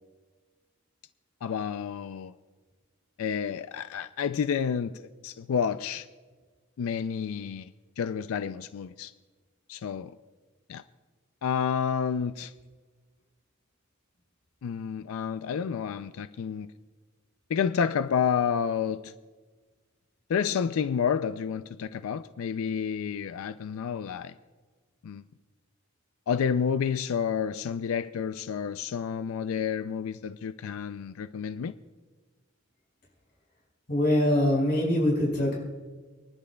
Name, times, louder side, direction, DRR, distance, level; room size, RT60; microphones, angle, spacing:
voice 1, 1.4-2.3 3.2-6.1 6.8-9.1 9.7-10.2 10.7-10.8 11.4-12.5 14.6-16.7 17.5-19.1 20.3-24.3 25.0-25.2 26.3-31.7, left 7 dB, 75° left, 0.4 m, -30 dB
voice 2, 33.9-35.6, left 1 dB, 50° left, 5.0 m, -23 dB
29.5 x 11.0 x 2.3 m
head